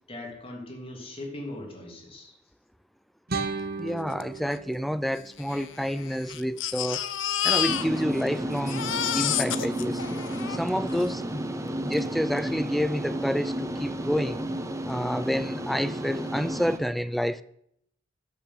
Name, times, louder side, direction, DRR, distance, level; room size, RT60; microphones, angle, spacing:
voice 1, 0.1-2.3, left 1 dB, 30° left, 2.7 m, -39 dB
sound 1, 3.3-6.3, right 4 dB, 55° right, 1.3 m, -36 dB
voice 2, 3.8-7.1 7.4-8.9 9.1-10.0 10.5-11.5 11.8-14.4 14.9-17.4, equal, ahead, 0.4 m, -29 dB
Crying sobbing, 4.2-4.3 4.5-4.6 5.4-8.3 8.5-11.1 11.9-12.0 12.4-12.5, left 10 dB, 70° left, 0.7 m, -30 dB
sound 2, 7.7-16.8, right 1 dB, 15° right, 0.9 m, -32 dB
12.0 x 6.8 x 7.4 m
head